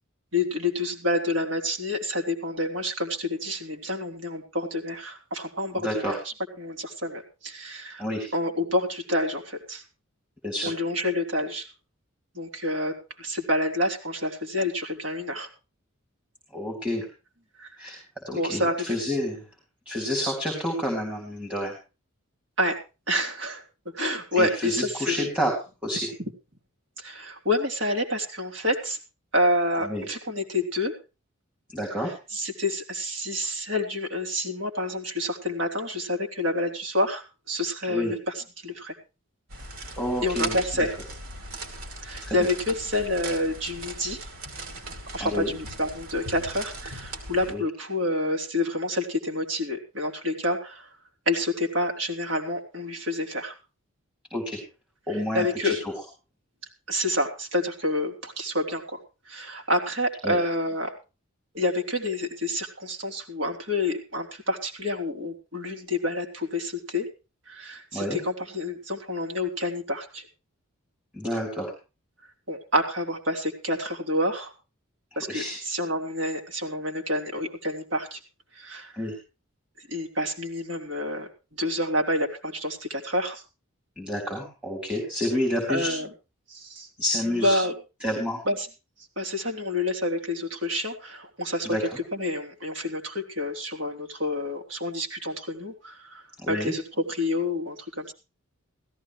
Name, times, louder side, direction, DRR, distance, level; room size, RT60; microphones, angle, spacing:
voice 1, 0.3-8.1 8.3-9.8 10.6-11.7 12.3-15.5 17.6-18.0 18.3-18.9 22.6-22.8 23.1-23.6 23.9-25.3 26.2-26.3 27.0-29.0 29.3-30.9 32.0-38.9 40.2-40.9 42.0-44.3 45.1-50.9 51.2-53.6 55.1-55.8 56.9-60.9 61.5-67.1 67.5-70.2 72.5-74.5 75.1-78.2 78.5-79.1 79.8-83.4 85.7-86.1 86.5-86.9 87.2-87.7 88.4-88.7 89.2-98.1, left 1 dB, 60° right, 2 dB, 3.3 m, -28 dB
voice 2, 5.7-6.1 8.0-8.3 10.4-10.7 16.5-17.1 17.8-18.0 18.2-19.4 19.9-21.7 24.4-25.6 25.8-26.1 29.9-30.0 31.7-32.1 37.9-38.1 40.0-40.6 42.2-42.4 45.2-45.5 47.5-47.6 54.3-54.6 55.1-55.7 60.2-60.4 67.9-68.2 71.1-71.7 75.3-75.6 79.0-79.1 84.0-85.9 87.0-87.6 88.0-88.4 91.6-91.8 96.4-96.7, left 1 dB, 5° right, -1 dB, 3.9 m, -29 dB
sound 1, 39.5-47.5, right 2 dB, 85° right, 2.9 m, -38 dB
17.0 x 14.5 x 3.2 m, 0.31 s
head